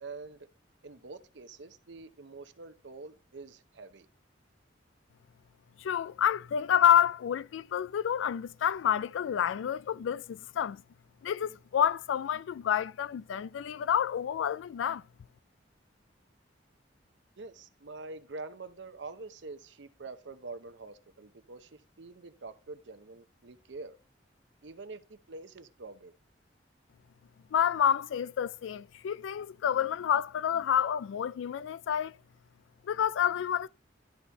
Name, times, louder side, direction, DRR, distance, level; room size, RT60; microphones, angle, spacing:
voice 1, 0.0-0.5 0.8-4.1 17.4-24.0 24.6-26.1, right 3 dB, 70° right, 0.7 m, -46 dB
voice 2, 5.8-10.8 11.2-15.0 27.5-32.1 32.9-33.7, left 9 dB, 80° left, 0.3 m, -28 dB
11.5 x 4.2 x 4.6 m
head